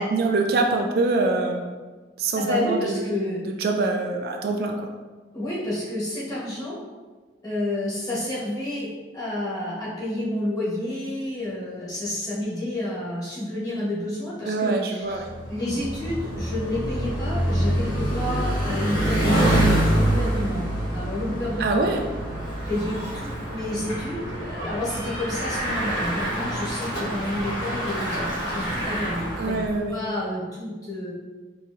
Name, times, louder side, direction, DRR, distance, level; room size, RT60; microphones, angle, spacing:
voice 1, 0.0-1.7 2.2-3.0 3.6-4.7 14.5-15.3 21.6-22.0 29.4-30.0, right 3 dB, 55° right, 3 dB, 0.3 m, -24 dB
voice 2, 2.3-3.4 5.3-6.8 7.4-8.9 9.1-20.6 20.9-21.9 22.6-29.6 29.9-31.1, left 1 dB, 20° left, -9 dB, 1.1 m, -29 dB
Bicycle, 15.1-29.8, right 1 dB, 90° left, 1.4 m, -26 dB
4.3 x 2.7 x 2.6 m, 1.3 s
head